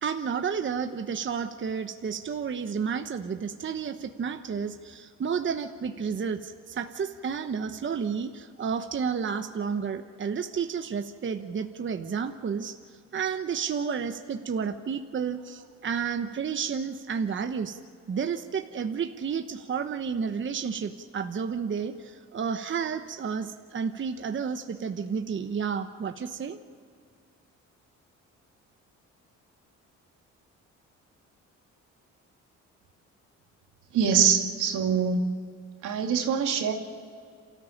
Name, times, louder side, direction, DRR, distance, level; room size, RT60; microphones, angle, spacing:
voice 1, 0.0-12.8 13.1-17.8 18.1-26.6, right 6 dB, 40° right, 7 dB, 1.1 m, -31 dB
voice 2, 33.9-35.2 35.8-36.7, right 7 dB, 85° right, 3 dB, 2.6 m, -24 dB
28.0 x 14.0 x 8.7 m, 2.2 s
cardioid pair, 90°, 30 cm